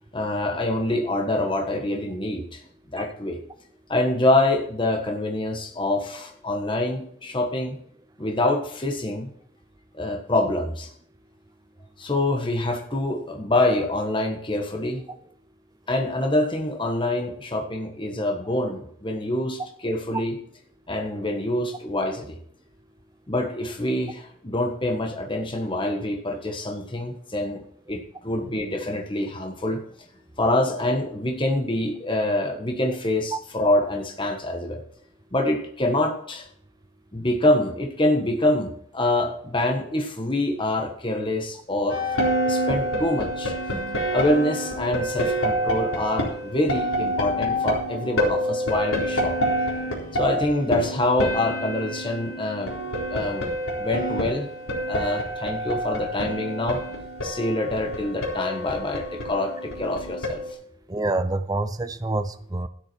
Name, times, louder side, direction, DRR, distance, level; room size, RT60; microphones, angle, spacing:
voice 1, 0.1-2.6 2.9-3.4 3.9-7.8 8.2-9.3 9.9-10.9 12.0-15.0 15.9-20.4 20.9-22.4 23.3-27.6 27.9-29.8 30.4-34.8 35.3-36.5 37.1-42.0 42.4-43.5 44.1-49.4 50.1-52.7 53.1-54.5 54.9-56.8 57.2-60.4, left 1 dB, 25° left, 3 dB, 1.4 m, -25 dB
sound 1, 41.9-60.5, equal, 85° left, 4.1 m, -28 dB
voice 2, 60.9-62.7, right 2 dB, 20° right, 9 dB, 0.6 m, -27 dB
12.5 x 9.8 x 4.6 m, 0.63 s
head